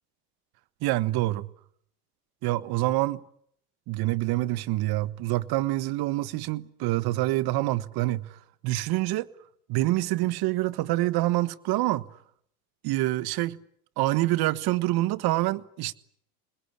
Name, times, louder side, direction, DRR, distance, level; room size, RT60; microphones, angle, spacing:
voice 1, 0.8-1.5 2.4-3.2 3.9-9.3 9.7-12.0 12.8-13.6 14.0-15.9, right 17 dB, 55° right, 1.4 m, -26 dB
27.5 x 21.0 x 9.8 m
hypercardioid pair, 95°, 45 cm